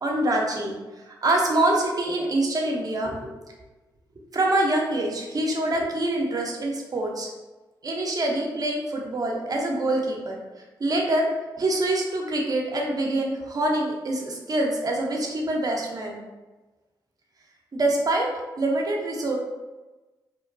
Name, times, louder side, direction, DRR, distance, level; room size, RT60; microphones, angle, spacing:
voice 1, 0.0-3.2 4.3-7.3 7.8-10.4 10.8-11.3 11.6-16.2 17.7-18.3 18.6-19.4, right 1 dB, 45° right, 0 dB, 0.6 m, -25 dB
2.9 x 2.2 x 2.5 m, 1.2 s
supercardioid pair, 45°, 9 cm